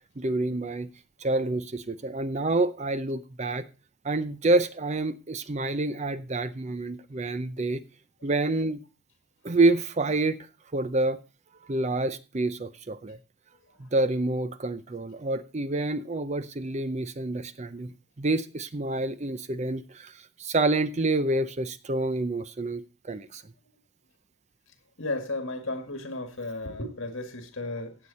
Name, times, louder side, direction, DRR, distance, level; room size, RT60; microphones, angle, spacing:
voice 1, 0.2-0.9 1.2-3.7 4.0-7.8 8.2-8.8 9.4-10.5 10.7-11.2 11.6-13.2 13.8-23.4, right 2 dB, 30° right, 0.5 m, -28 dB
voice 2, 25.0-28.0, left 2 dB, 60° left, 2.1 m, -34 dB
15.5 x 8.2 x 4.2 m
head